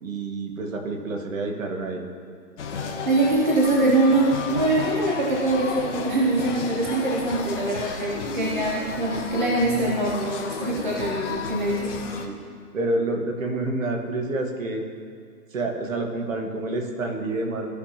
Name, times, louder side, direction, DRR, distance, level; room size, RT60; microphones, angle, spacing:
voice 1, 0.0-2.0 12.1-12.4 12.7-14.8 15.5-17.7, right 2 dB, 50° right, 3 dB, 1.3 m, -28 dB
sound 1, 2.6-12.3, left 5 dB, 45° left, 0.9 m, -33 dB
voice 2, 3.1-12.0, right 2 dB, 30° right, -2 dB, 0.6 m, -23 dB
15.5 x 5.8 x 2.8 m, 2.2 s
hypercardioid pair, 170°, 49 cm